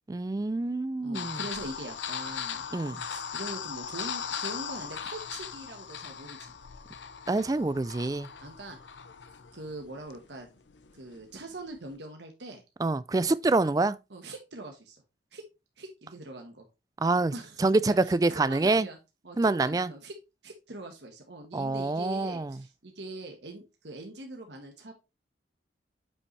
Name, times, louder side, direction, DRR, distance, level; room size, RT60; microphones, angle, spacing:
voice 1, 0.1-1.4 2.7-3.0 7.3-8.3 12.8-14.0 17.0-17.3 17.6-18.9 19.4-19.9 21.5-22.6, right 3 dB, 20° right, 0.3 m, -26 dB
voice 2, 1.0-2.7 3.1-6.6 8.4-8.9 9.5-10.5 10.9-12.6 14.1-15.0 15.3-15.4 15.8-16.7 17.3-17.6 17.9-19.0 19.2-20.1 20.4-24.9, right 2 dB, 75° right, 1.3 m, -42 dB
sound 1, 1.1-11.9, left 7 dB, 85° left, 0.7 m, -39 dB
8.6 x 5.4 x 3.2 m
head